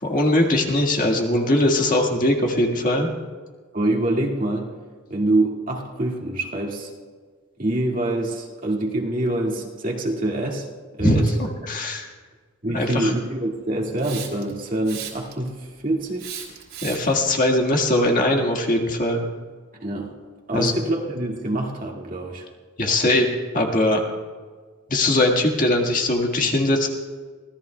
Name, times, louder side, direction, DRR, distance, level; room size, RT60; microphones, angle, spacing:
voice 1, 0.0-3.1 11.0-11.3 11.7-12.1 12.7-13.1 16.8-19.3 20.5-20.7 22.8-23.3 23.5-24.0 24.9-26.9, left 1 dB, 40° left, 1 dB, 1.7 m, -20 dB
voice 2, 3.7-4.7 5.1-6.9 7.6-10.7 10.9-11.3 12.6-16.3 19.8-20.1 20.5-22.5, right 1 dB, 40° right, -1 dB, 2.1 m, -25 dB
Hiss, 14.0-14.5 14.9-15.5 16.2-17.2, right 9 dB, 60° right, 3.6 m, -35 dB
25.0 x 18.0 x 2.3 m, 1.5 s
head